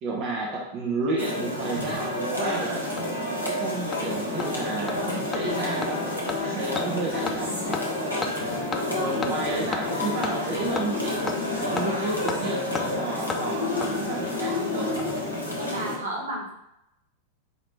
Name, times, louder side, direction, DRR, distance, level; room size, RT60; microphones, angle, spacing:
voice 1, 0.0-2.8 3.5-6.0 6.4-7.8 8.9-11.2 11.7-14.9, right 2 dB, 40° right, -2 dB, 0.8 m, -31 dB
sound 1, 1.2-16.0, left 1 dB, 90° left, 1.2 m, -29 dB
Hammer, 2.0-2.1 2.5-2.6 3.0-3.1 3.5-3.6 3.9-4.0 4.4-4.5 4.9-5.0 5.3-5.4 5.8-5.9 6.3-6.4 6.8-6.9 7.3-7.4 7.7-7.8 8.2-8.3 8.7-8.8 9.2-9.3 9.7-9.8 10.2-10.3 10.8-10.9 11.3-11.4 11.8-11.9 12.3-12.4 12.8-12.9 13.3-13.4 13.8-13.9 14.8-15.2 15.5-15.6, left 5 dB, 20° left, 0.4 m, -31 dB
sound 2, 4.4-13.0, left 5 dB, 50° left, 0.7 m, -38 dB
voice 2, 8.7-9.3 15.6-16.5, right 1 dB, 75° right, -2 dB, 1.1 m, -33 dB
5.0 x 2.9 x 3.2 m, 0.84 s
figure-of-eight pair, 90°, 0 cm